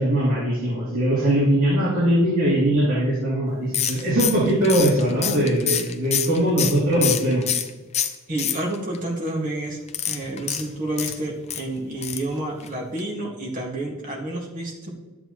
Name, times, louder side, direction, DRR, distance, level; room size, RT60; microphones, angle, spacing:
voice 1, 0.0-7.5, right 1 dB, 75° right, -9 dB, 2.9 m, -21 dB
sound 1, 3.7-7.7 7.9-9.0 9.9-11.6 12.0-12.3 12.6-12.7 13.0-13.1, left 9 dB, 30° left, 0.5 m, -26 dB
voice 2, 8.3-9.8 10.1-14.9, right 1 dB, 40° right, -2 dB, 1.9 m, -29 dB
11.5 x 8.0 x 3.1 m, 1.2 s
head